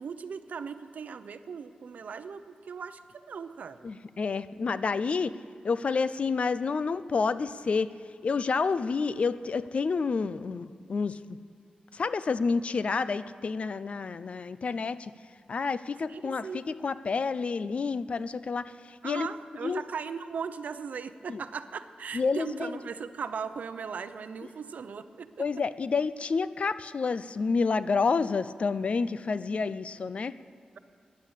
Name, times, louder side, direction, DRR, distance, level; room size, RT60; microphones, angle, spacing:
voice 1, 0.0-3.0 3.3-3.9 16.1-16.6 19.0-25.5, right 6 dB, 70° right, 11 dB, 0.7 m, -38 dB
voice 2, 3.8-5.3 5.6-7.9 8.2-11.2 11.9-15.1 15.5-19.3 19.6-19.8 21.3-21.4 22.1-22.7 25.4-30.3, left 4 dB, 50° left, 15 dB, 0.5 m, -29 dB
15.0 x 10.5 x 8.1 m, 2.4 s
wide cardioid pair, 100°, 3 cm